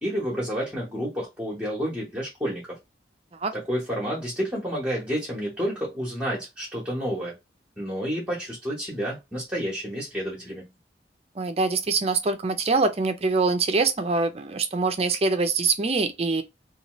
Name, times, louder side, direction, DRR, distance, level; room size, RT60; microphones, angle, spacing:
voice 1, 0.0-2.8 3.5-7.4 7.8-10.7, equal, 5° right, 1.0 m, -30 dB
voice 2, 11.4-16.4, right 4 dB, 35° right, 0.4 m, -24 dB
2.8 x 2.3 x 3.0 m
head